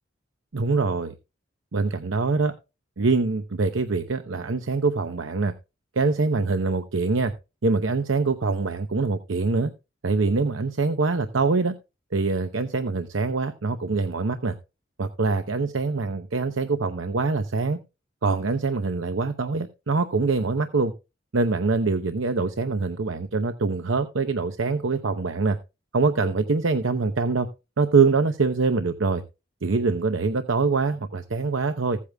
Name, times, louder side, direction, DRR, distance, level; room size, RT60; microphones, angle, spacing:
voice 1, 0.5-1.1 1.7-2.5 3.0-5.5 6.0-7.3 7.6-9.7 10.0-11.7 12.1-14.5 15.0-17.8 18.2-20.9 21.3-25.6 25.9-27.5 27.8-29.2 29.6-32.0, right 4 dB, 85° right, 8 dB, 0.8 m, -24 dB
16.0 x 8.5 x 2.3 m, 0.27 s
head